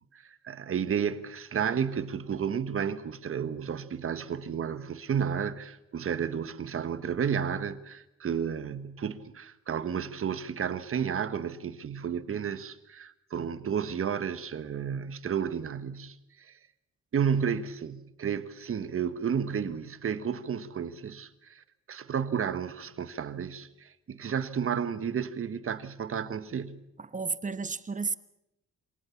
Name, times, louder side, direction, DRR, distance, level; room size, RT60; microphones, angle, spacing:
voice 1, 0.1-16.6 17.1-26.8, right 7 dB, 45° right, 1.4 m, -32 dB
voice 2, 27.1-28.2, right 4 dB, 25° right, 1.1 m, -32 dB
26.0 x 18.5 x 7.2 m
cardioid pair, 90°, 30 cm